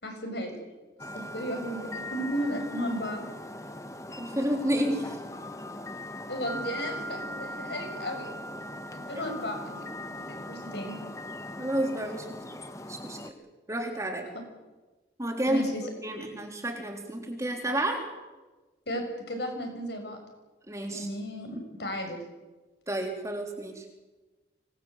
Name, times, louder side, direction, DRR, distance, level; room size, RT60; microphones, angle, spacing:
voice 1, 0.0-0.6 1.1-3.2 6.3-8.3 8.9-9.8 10.1-11.0 15.5-15.8 18.9-20.2 20.9-22.2, equal, 65° left, 4 dB, 6.7 m, -34 dB
sound 1, 1.0-13.3, left 1 dB, 15° left, 1.3 m, -40 dB
voice 2, 4.2-5.2 11.6-12.3 12.9-13.3 13.7-14.3 15.2-15.6 16.0-18.1 20.7-21.1 22.9-23.9, right 1 dB, 15° right, 2 dB, 3.5 m, -30 dB
25.5 x 19.5 x 8.2 m, 1.2 s
head